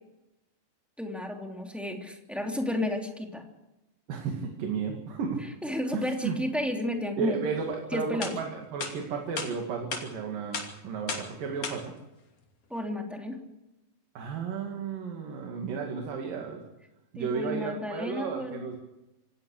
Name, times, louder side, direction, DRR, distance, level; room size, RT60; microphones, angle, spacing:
voice 1, 1.0-3.4 5.6-7.4 7.9-8.4 12.7-13.4 17.2-18.6, left 1 dB, ahead, 2 dB, 2.4 m, -32 dB
voice 2, 4.1-5.4 5.9-6.4 7.2-11.9 14.2-16.6 17.1-18.8, right 6 dB, 85° right, 2 dB, 4.0 m, -33 dB
sound 1, 7.7-7.8 8.2-8.3 8.8-8.9 9.4-9.5 9.9-10.0 10.5-10.7 11.1-11.3 11.6-11.8, left 5 dB, 65° left, 4.3 m, -33 dB
26.5 x 16.5 x 6.6 m, 0.98 s
omnidirectional pair, 3.8 m